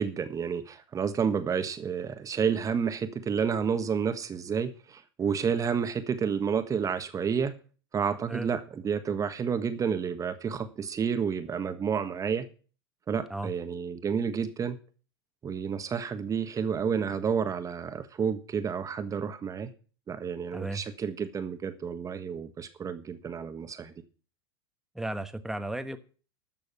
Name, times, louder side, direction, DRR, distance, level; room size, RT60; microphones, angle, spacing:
voice 1, 0.0-7.5 7.9-12.5 13.1-14.8 15.4-19.7 20.1-23.9, right 6 dB, 25° right, 9 dB, 1.5 m, -30 dB
voice 2, 8.3-8.6 13.3-13.5 20.5-20.8 24.9-26.0, right 2 dB, 5° right, 9 dB, 1.3 m, -34 dB
13.0 x 7.0 x 6.8 m, 0.38 s
hypercardioid pair, 95°, 13 cm